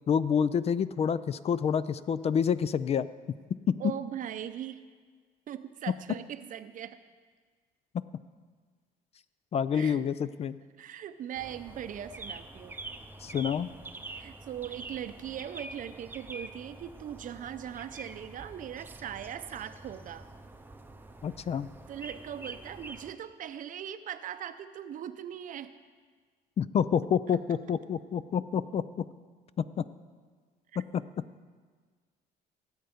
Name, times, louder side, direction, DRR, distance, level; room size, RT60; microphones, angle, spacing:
voice 1, 0.1-3.1 3.7-3.8 7.9-8.0 9.5-10.6 13.2-13.7 21.2-21.7 26.6-29.1 29.6-29.8 30.8-31.0, left 7 dB, 40° left, 16 dB, 0.4 m, -28 dB
voice 2, 3.8-4.8 5.5-7.0 9.7-10.0 10.8-12.8 14.1-20.3 21.9-25.7 30.7-30.8, right 10 dB, 50° right, 11 dB, 0.6 m, -40 dB
sound 1, 11.3-23.1, right 2 dB, 10° right, 0.6 m, -46 dB
17.0 x 8.0 x 5.1 m, 1.6 s
cardioid pair, 110°, 17 cm